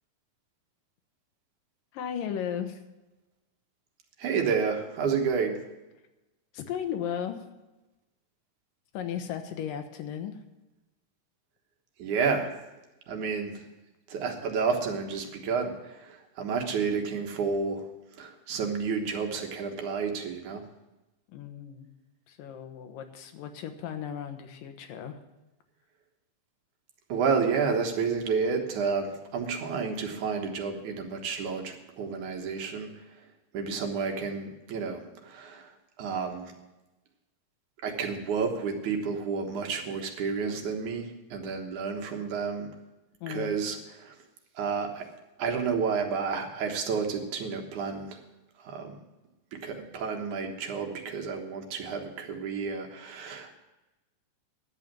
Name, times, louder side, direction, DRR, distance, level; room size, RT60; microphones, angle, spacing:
voice 1, 1.9-2.8 6.5-7.4 8.9-10.4 21.3-21.9 22.3-25.2 43.2-43.6, left 9 dB, 85° left, 6 dB, 2.8 m, -35 dB
voice 2, 4.2-5.6 12.0-12.5 13.1-13.7 14.1-17.9 18.1-20.6 27.1-33.3 33.5-36.6 37.8-42.7 43.3-44.2 44.6-45.1 45.4-48.2 48.6-49.0 49.5-53.6, right 5 dB, 70° right, 3 dB, 2.7 m, -30 dB
11.0 x 8.3 x 7.4 m, 1.0 s
omnidirectional pair, 3.8 m